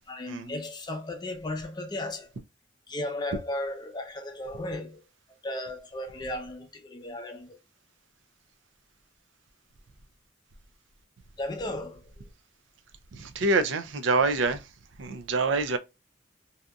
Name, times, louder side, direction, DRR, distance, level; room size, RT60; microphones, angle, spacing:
voice 1, 0.1-2.3 2.9-7.6 11.4-12.3, left 1 dB, 25° left, 0.5 m, -35 dB
voice 2, 13.1-14.7 15.0-15.8, right 3 dB, 80° right, 0.5 m, -26 dB
2.7 x 2.5 x 2.2 m
head